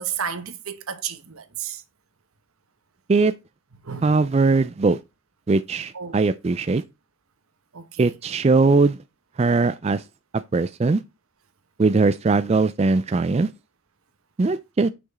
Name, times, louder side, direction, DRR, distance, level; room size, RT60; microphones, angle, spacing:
voice 1, 0.0-1.8 3.8-4.2 5.9-6.2 7.7-8.1, right 7 dB, 85° right, 1.0 m, -32 dB
voice 2, 4.0-5.0 5.5-6.8 8.0-9.0 9.4-10.0 10.5-11.0 11.8-13.5 14.4-14.9, right 3 dB, 30° right, 0.3 m, -20 dB
6.0 x 5.9 x 4.1 m
head